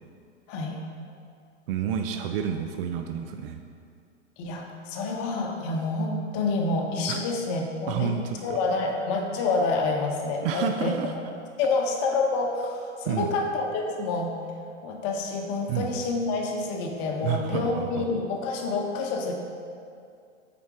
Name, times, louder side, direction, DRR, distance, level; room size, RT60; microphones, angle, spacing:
voice 1, 0.5-0.8 4.4-8.1 8.4-10.9 11.6-14.3 14.8-19.3, left 3 dB, 40° left, 1 dB, 1.2 m, -28 dB
voice 2, 1.7-3.6 7.1-7.3 7.9-8.4 10.4-11.1 13.1-13.3 15.7-15.9 17.2-18.1, right 8 dB, 50° right, 5 dB, 0.6 m, -29 dB
7.1 x 5.2 x 4.8 m, 2.3 s
hypercardioid pair, 110°, 36 cm